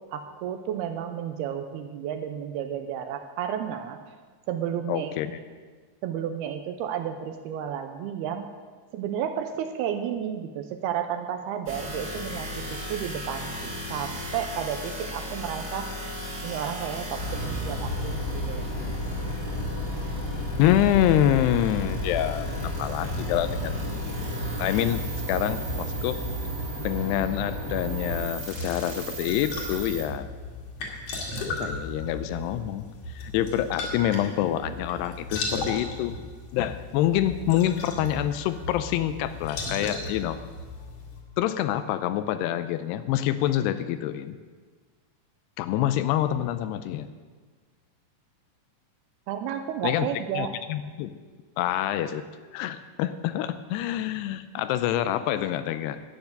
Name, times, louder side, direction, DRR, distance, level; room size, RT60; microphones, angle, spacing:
voice 1, 0.1-4.0 4.5-5.1 6.0-8.5 8.9-15.9 16.4-18.2 18.5-18.7 49.3-50.5, right 9 dB, 85° right, 7 dB, 2.4 m, -32 dB
voice 2, 4.9-5.4 20.6-22.5 22.8-23.8 24.6-25.0 25.3-26.2 26.8-30.3 31.4-40.4 41.4-44.3 45.6-47.1 49.8-50.1 50.3-51.1 51.6-52.2 52.5-56.0, left 12 dB, 80° left, 12 dB, 2.5 m, -26 dB
sound 1, 11.7-30.1, left 1 dB, 30° right, 1.8 m, -36 dB
sound 2, 17.2-28.3, equal, 30° left, 2.3 m, -32 dB
sound 3, 28.3-41.2, left 2 dB, 55° left, 3.1 m, -36 dB
12.0 x 9.4 x 6.5 m, 1.5 s
omnidirectional pair, 4.9 m